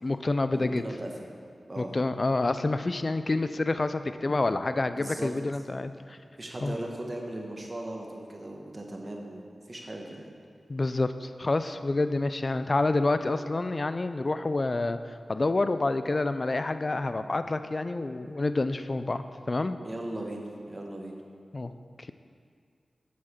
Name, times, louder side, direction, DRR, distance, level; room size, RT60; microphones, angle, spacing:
voice 1, 0.0-0.8 1.8-6.2 6.6-6.8 10.7-19.8 21.5-21.7 22.0-22.1, left 2 dB, 45° left, 11 dB, 0.3 m, -28 dB
voice 2, 0.5-1.3 1.7-2.0 4.9-5.3 6.4-10.3 19.8-21.2, right 1 dB, 35° right, 1 dB, 1.1 m, -38 dB
7.4 x 6.4 x 4.3 m, 2.2 s
cardioid pair, 55°, 0 cm